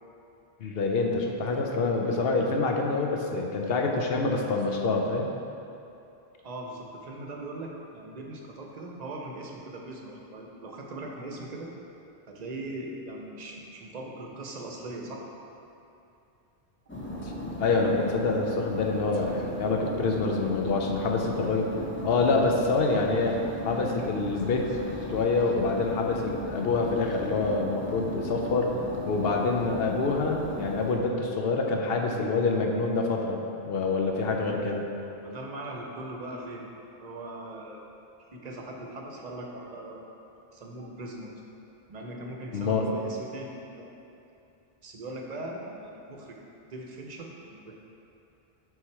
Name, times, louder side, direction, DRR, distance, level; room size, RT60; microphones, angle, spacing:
voice 1, 0.6-5.3 17.2-17.3 17.6-21.7 22.0-23.4 23.6-24.7 25.1-28.7 29.1-34.8 42.5-42.9, left 3 dB, 70° left, 1 dB, 0.8 m, -26 dB
voice 2, 6.4-11.7 12.3-15.2 35.2-36.7 37.0-37.9 38.3-40.2 40.5-41.3 41.9-43.9 44.8-46.4 46.7-47.7, right 1 dB, 45° right, 0 dB, 0.7 m, -40 dB
sound 1, 16.9-30.9, left 1 dB, 15° left, 0.5 m, -36 dB
5.8 x 3.7 x 4.6 m, 2.7 s
omnidirectional pair, 1.1 m